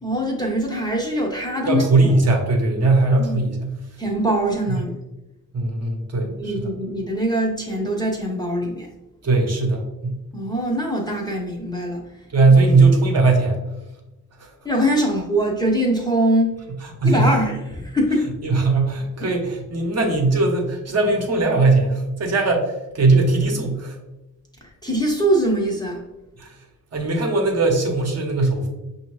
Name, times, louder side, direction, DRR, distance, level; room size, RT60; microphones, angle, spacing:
voice 1, 0.0-1.9 3.1-3.4 4.0-4.9 6.1-8.9 10.3-12.0 14.6-16.5 17.0-18.3 19.2-19.3 24.6-26.0, right 1 dB, 10° left, -2 dB, 0.6 m, -23 dB
voice 2, 1.7-3.7 5.5-6.7 9.2-10.2 12.3-13.6 14.4-14.5 16.8-17.3 18.4-24.0 26.4-26.6 26.9-28.7, right 3 dB, 45° right, 1 dB, 0.8 m, -19 dB
5.5 x 2.7 x 3.0 m, 1.0 s
wide cardioid pair, 120°, 36 cm